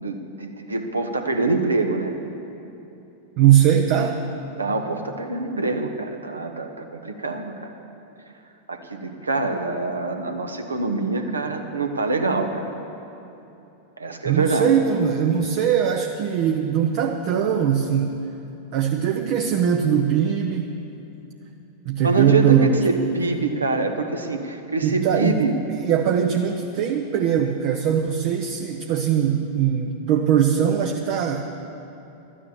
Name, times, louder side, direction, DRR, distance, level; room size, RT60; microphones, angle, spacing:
voice 1, 0.0-2.1 4.6-7.7 8.7-12.7 14.0-14.7 22.0-22.6 22.8-25.5, right 3 dB, 75° right, 5 dB, 1.1 m, -25 dB
voice 2, 3.4-4.2 14.2-18.2 18.7-20.7 21.9-22.9 24.8-25.4 25.7-31.4, right 8 dB, 45° right, 4 dB, 0.7 m, -21 dB
13.0 x 10.0 x 7.1 m, 3.0 s
figure-of-eight pair, 90°, 0 cm